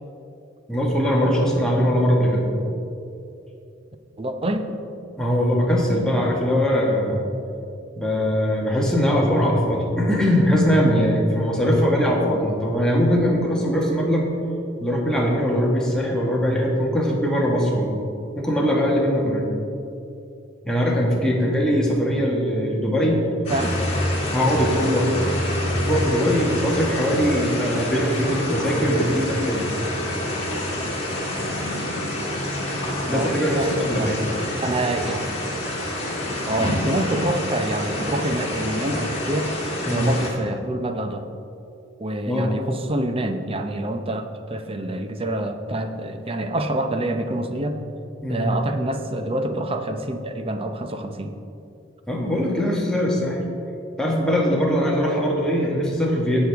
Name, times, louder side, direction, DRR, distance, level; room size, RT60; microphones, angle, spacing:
voice 1, 0.7-2.5 5.2-7.3 7.9-14.2 14.8-18.0 18.4-19.5 20.6-23.3 24.3-25.1 25.7-29.7 33.1-34.2 39.8-40.1 42.3-42.5 48.2-48.5 52.1-53.4 54.0-56.5, equal, 5° left, -3 dB, 1.6 m, -21 dB
voice 2, 4.2-4.7 23.5-23.8 33.0-34.1 34.6-35.2 36.5-39.5 39.9-41.3 42.0-44.2 44.5-47.8 48.3-51.3, right 1 dB, 30° right, 7 dB, 0.7 m, -26 dB
sound 1, 23.5-40.3, left 1 dB, 35° left, 2.3 m, -27 dB
17.0 x 6.4 x 3.5 m, 2.6 s
head